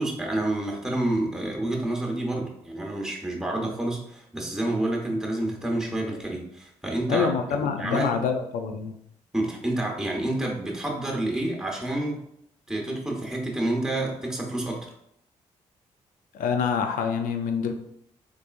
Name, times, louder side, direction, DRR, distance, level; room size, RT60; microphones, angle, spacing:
voice 1, 0.0-7.3 7.6-8.1 9.3-12.2 12.7-14.9, right 1 dB, 5° right, 0 dB, 1.1 m, -28 dB
voice 2, 7.1-8.9 16.3-17.7, left 6 dB, 80° left, 6 dB, 0.5 m, -26 dB
3.5 x 3.2 x 2.5 m, 0.73 s
supercardioid pair, 50°, 14 cm